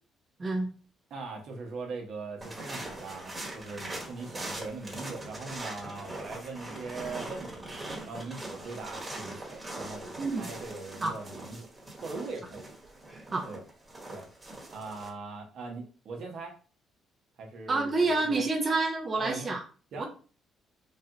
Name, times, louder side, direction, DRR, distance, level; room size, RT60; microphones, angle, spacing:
voice 1, 1.1-7.7 8.1-11.7 12.0-12.8 13.4-13.6 14.1-14.3 14.7-16.6 17.4-18.4 19.2-19.5 19.9-20.1, right 3 dB, 65° right, 1 dB, 0.9 m, -41 dB
sound 1, 2.4-15.1, right 1 dB, 20° right, 1.3 m, -41 dB
voice 2, 10.2-10.5 11.0-11.1 13.3-13.4 17.7-19.6 20.0-20.1, right 3 dB, 35° right, 1 dB, 0.7 m, -28 dB
3.2 x 2.3 x 2.8 m, 0.38 s
supercardioid pair, 65°, 0 cm